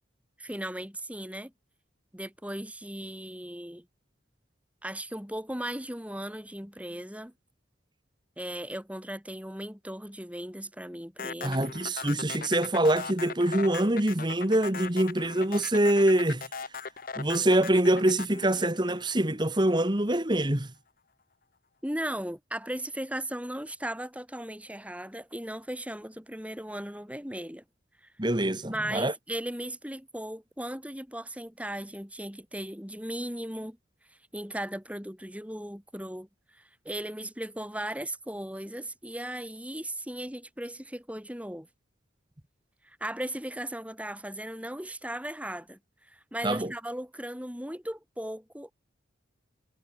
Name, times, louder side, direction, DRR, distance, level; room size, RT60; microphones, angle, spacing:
voice 1, 0.4-1.5 2.1-3.8 4.8-7.3 8.4-11.7 21.8-27.6 28.7-33.8 34.3-36.3 36.5-41.7 42.8-48.7, right 1 dB, 5° right, 6.2 m, -37 dB
sound 1, 11.2-19.5, left 5 dB, 45° left, 1.1 m, -39 dB
voice 2, 11.4-16.4 17.2-20.7 28.2-29.1 46.4-46.7, right 1 dB, 25° right, 1.6 m, -25 dB
head